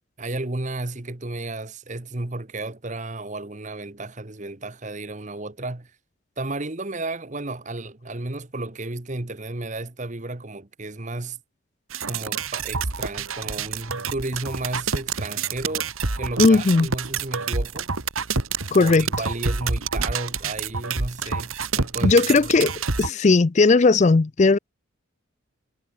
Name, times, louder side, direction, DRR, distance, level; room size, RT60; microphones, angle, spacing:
voice 1, 0.2-5.9 6.4-11.4 12.0-15.9 16.2-17.9 18.7-22.5, right 2 dB, 35° right, 1.2 m, -33 dB
sound 1, 11.9-23.1, right 4 dB, 85° right, 2.0 m, -27 dB
voice 2, 16.4-16.9 18.7-19.1 22.0-22.7 23.0-24.6, left 3 dB, 35° left, 0.4 m, -17 dB
head